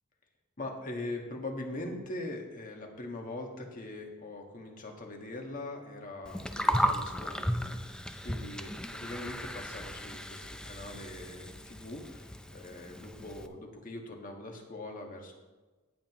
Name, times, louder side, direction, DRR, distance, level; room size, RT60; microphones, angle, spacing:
voice 1, 0.6-15.3, left 2 dB, 40° left, 2 dB, 1.5 m, -42 dB
Gurgling, 6.3-13.5, equal, 5° left, 0.5 m, -35 dB
17.5 x 7.6 x 3.0 m, 1.2 s
head